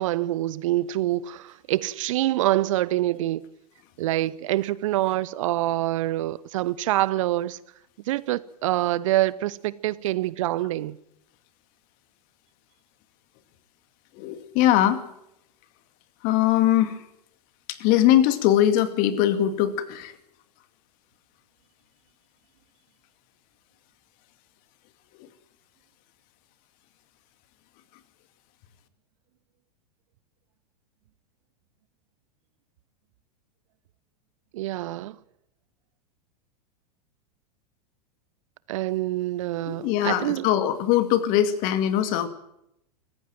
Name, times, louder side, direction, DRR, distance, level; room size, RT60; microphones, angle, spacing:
voice 1, 0.0-3.5 4.0-7.6 8.1-11.0 34.5-35.2 38.7-40.5, right 15 dB, 55° right, 0.7 m, -26 dB
voice 2, 14.2-15.0 16.2-17.0 17.7-20.1 39.7-42.3, left 12 dB, 45° left, 2.2 m, -21 dB
26.5 x 15.0 x 7.7 m
figure-of-eight pair, 90°, 21 cm